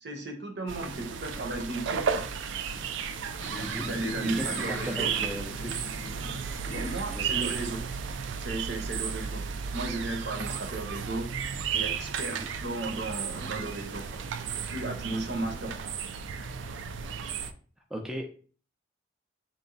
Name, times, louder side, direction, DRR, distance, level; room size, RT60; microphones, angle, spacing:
voice 1, 0.0-2.2 3.9-5.1 6.7-7.8 8.4-9.5 9.7-11.3 11.7-14.2 14.6-15.9, right 2 dB, 70° right, 4 dB, 0.8 m, -35 dB
sound 1, 0.7-17.5, right 6 dB, 85° right, 0.4 m, -34 dB
sound 2, 2.7-7.1, left 2 dB, 60° left, 0.5 m, -41 dB
voice 2, 4.2-5.9 6.7-7.8 8.1-8.2 12.3-12.5 17.9-18.3, equal, 5° right, 1 dB, 0.4 m, -38 dB
4.0 x 2.2 x 3.8 m, 0.41 s
head